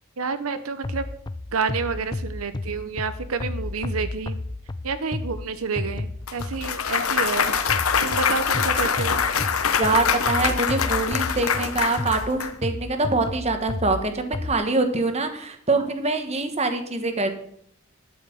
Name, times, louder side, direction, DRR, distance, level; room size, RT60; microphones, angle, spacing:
voice 1, 0.2-1.0 1.5-4.4 4.8-7.5 8.0-9.3, right 5 dB, 85° right, 11 dB, 0.8 m, -29 dB
sound 1, 0.8-6.9 7.7-14.5, left 2 dB, 20° left, 0.4 m, -33 dB
Clapping / Cheering / Applause, 6.3-12.5, left 6 dB, 90° left, 1.0 m, -24 dB
voice 2, 9.8-17.3, right 3 dB, 30° right, 7 dB, 1.2 m, -24 dB
12.0 x 5.7 x 7.8 m, 0.68 s
head